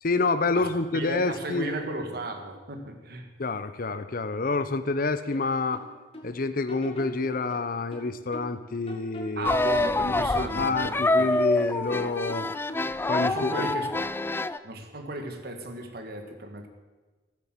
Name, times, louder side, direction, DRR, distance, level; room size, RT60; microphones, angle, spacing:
voice 1, 0.0-1.7 3.4-5.8 6.2-9.5 10.0-12.5 13.1-13.7, left 3 dB, 55° left, 12 dB, 0.8 m, -28 dB
voice 2, 0.5-3.3 9.4-11.3 13.2-13.9 14.6-16.7, right 1 dB, 60° right, 4 dB, 1.6 m, -35 dB
sound 1, 5.3-6.3 6.7-8.6 8.9-10.7 11.0-13.0 13.2-14.0, equal, 35° left, 2.1 m, -44 dB
sound 2, 9.4-14.6, left 2 dB, 15° left, 0.3 m, -26 dB
14.5 x 7.5 x 7.5 m, 1.2 s
head